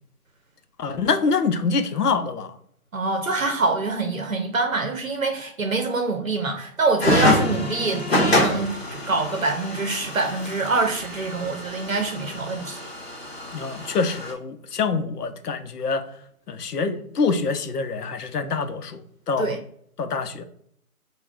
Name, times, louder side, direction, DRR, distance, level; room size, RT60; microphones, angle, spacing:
voice 1, 0.8-2.5 13.5-16.0 16.5-19.0 19.3-19.6 20.0-20.4, left 4 dB, 90° left, 9 dB, 0.7 m, -25 dB
voice 2, 2.9-12.8 19.4-19.6, right 3 dB, 60° right, 4 dB, 0.7 m, -25 dB
sound 1, 7.0-14.3, left 1 dB, 45° left, 0.7 m, -26 dB
3.8 x 2.3 x 3.4 m, 0.66 s
figure-of-eight pair, 170°, 45 cm